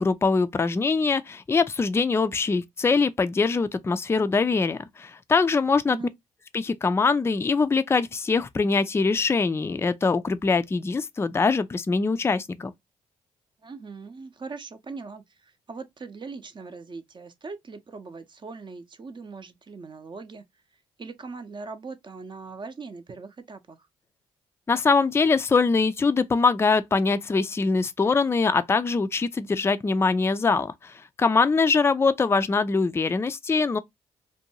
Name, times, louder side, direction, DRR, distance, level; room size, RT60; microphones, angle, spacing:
voice 1, 0.0-6.0 6.5-12.7 24.7-33.8, left 4 dB, 20° left, 0.4 m, -23 dB
voice 2, 13.6-20.4 21.0-23.9, right 4 dB, 35° right, 0.6 m, -40 dB
2.5 x 2.2 x 2.8 m
supercardioid pair, 55°, 14 cm